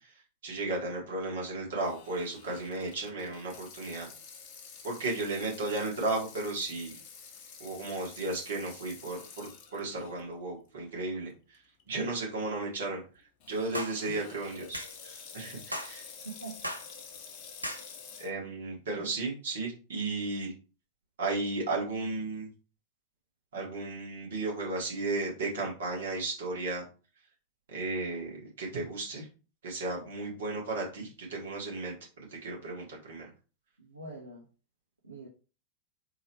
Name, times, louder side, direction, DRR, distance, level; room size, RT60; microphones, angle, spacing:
voice 1, 0.4-4.1 4.8-7.0 7.6-11.3 11.9-13.0 13.5-16.1 18.2-20.5 21.2-22.5 23.5-26.8 27.7-29.3 29.6-31.9 32.4-33.3, right 2 dB, 60° right, 1.8 m, -34 dB
Water tap faucet / Sink (filling or washing), 1.8-10.2 10.7-10.8 11.5-11.8 13.4-18.3, left 6 dB, 45° left, 0.9 m, -49 dB
sound 1, 13.7-14.0 14.7-14.9 15.7-15.9 16.6-16.9 17.6-17.8, equal, 90° left, 0.6 m, -36 dB
voice 2, 16.2-16.6 19.0-19.1 33.8-34.5 35.0-35.3, right 3 dB, 80° right, 0.9 m, -44 dB
3.8 x 3.0 x 4.3 m
figure-of-eight pair, 90°, 0 cm